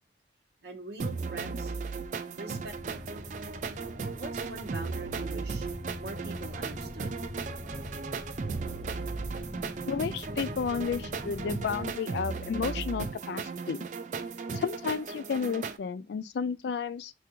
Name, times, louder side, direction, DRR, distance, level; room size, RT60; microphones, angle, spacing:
voice 1, 0.6-1.7 2.4-3.2 4.1-5.7 6.0-7.1, right 2 dB, 70° right, 0.9 m, -43 dB
sound 1, 1.0-15.8, right 4 dB, 45° right, 0.3 m, -36 dB
sound 2, 2.5-11.9, left 1 dB, 20° left, 0.5 m, -43 dB
voice 2, 9.9-13.9 14.5-17.1, left 6 dB, 70° left, 0.3 m, -32 dB
3.5 x 2.4 x 2.9 m
head